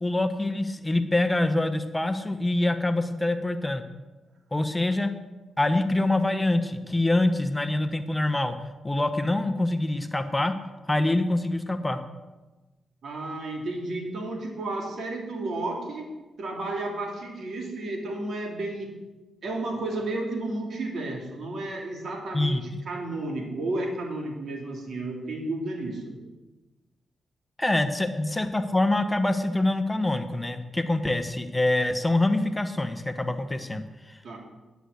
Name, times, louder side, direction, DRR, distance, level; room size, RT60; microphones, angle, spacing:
voice 1, 0.0-3.8 4.5-5.1 5.6-8.6 8.8-10.5 10.9-12.0 22.3-22.6 27.6-34.4, left 2 dB, 15° left, 9 dB, 1.1 m, -25 dB
voice 2, 13.0-16.1 16.4-18.9 19.4-26.0 34.2-34.4, right 2 dB, 70° right, 2 dB, 2.9 m, -32 dB
11.0 x 8.2 x 7.9 m, 1.1 s
cardioid pair, 60°, 0 cm